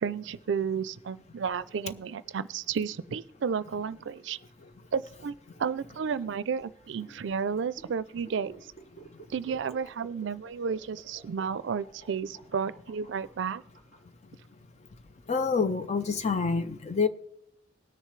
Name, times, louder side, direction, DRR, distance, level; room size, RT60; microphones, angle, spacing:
voice 1, 0.0-4.4 4.9-8.5 9.3-13.6, right 6 dB, 75° right, 0.4 m, -32 dB
sound 1, 1.5-14.0, right 3 dB, 55° left, 5.1 m, -54 dB
voice 2, 15.3-17.1, left 5 dB, 35° left, 0.5 m, -27 dB
19.5 x 6.6 x 3.2 m
head